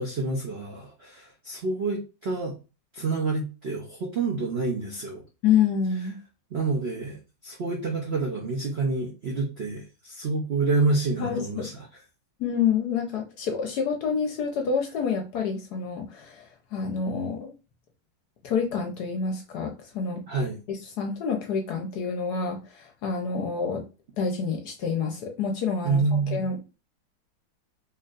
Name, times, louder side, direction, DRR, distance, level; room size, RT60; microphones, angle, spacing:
voice 1, 0.0-2.5 2.9-5.2 6.5-7.2 7.4-11.8 20.3-20.6 25.8-26.4, right 3 dB, 65° right, 0.6 m, -28 dB
voice 2, 5.4-6.2 11.2-11.7 12.4-17.5 18.4-20.2 20.7-23.8 24.2-26.8, left 6 dB, 70° left, 1.0 m, -28 dB
4.6 x 2.8 x 2.4 m
omnidirectional pair, 2.1 m